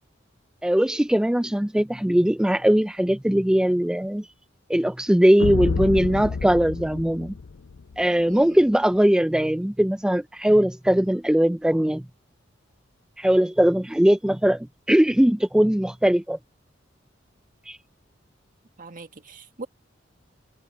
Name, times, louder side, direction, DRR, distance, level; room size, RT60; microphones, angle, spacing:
voice 1, 0.6-4.3 4.7-7.3 8.0-12.0 13.2-16.4 17.7-17.8, equal, 5° right, 0.3 m, -20 dB
sound 1, 5.4-8.0, left 4 dB, 85° left, 0.5 m, -29 dB
voice 2, 8.3-8.6 18.8-19.7, right 3 dB, 45° right, 1.8 m, -41 dB
head